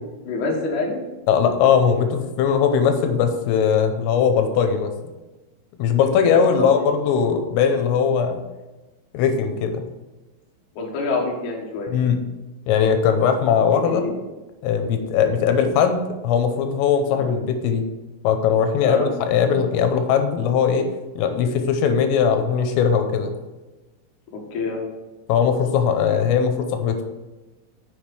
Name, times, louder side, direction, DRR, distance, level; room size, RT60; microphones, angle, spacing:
voice 1, 0.2-1.0 6.4-6.8 10.7-11.9 13.8-14.2 17.1-17.3 18.8-19.1 24.5-24.9, left 3 dB, 60° left, -1 dB, 2.1 m, -26 dB
voice 2, 1.3-4.9 5.8-8.4 9.1-9.8 11.9-12.2 12.7-14.0 14.6-17.9 18.2-20.9 21.2-23.3 25.3-27.0, left 7 dB, 85° left, 6 dB, 3.3 m, -20 dB
7.3 x 7.2 x 4.8 m, 1.1 s
omnidirectional pair, 5.8 m